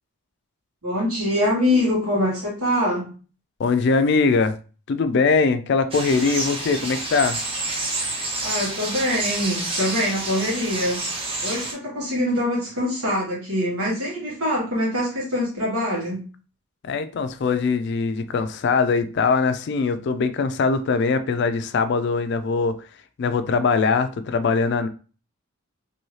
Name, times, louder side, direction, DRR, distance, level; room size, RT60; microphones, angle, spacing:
voice 1, 0.8-3.1 8.4-11.0 11.4-16.2, left 1 dB, 90° right, 1.4 m, -24 dB
voice 2, 3.6-4.6 4.9-7.4 16.8-22.8 23.2-24.9, left 4 dB, 50° left, 0.3 m, -21 dB
sound 1, 5.9-11.7, right 2 dB, 25° right, 0.6 m, -29 dB
2.7 x 2.7 x 3.1 m
head